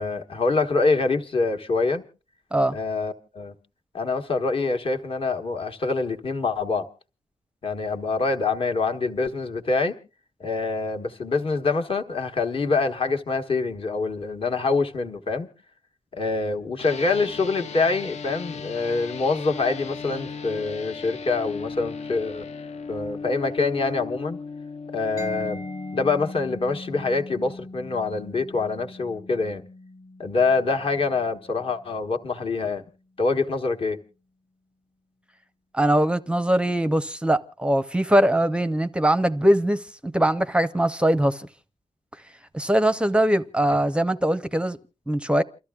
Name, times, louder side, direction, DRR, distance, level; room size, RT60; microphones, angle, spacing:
voice 1, 0.0-2.0 2.7-3.5 3.9-6.9 7.6-10.0 10.4-15.5 16.1-22.5 22.9-24.4 24.9-25.6 25.9-29.6 30.2-32.8 33.2-34.0, left 3 dB, 45° left, 1.3 m, -25 dB
sound 1, 16.8-26.3, left 5 dB, 65° left, 0.7 m, -37 dB
Mallet percussion, 25.2-32.7, left 2 dB, 25° left, 1.1 m, -41 dB
voice 2, 35.7-41.5 42.5-44.8 45.1-45.4, right 1 dB, 10° right, 0.6 m, -21 dB
29.0 x 13.5 x 2.3 m
wide cardioid pair, 155°, 13 cm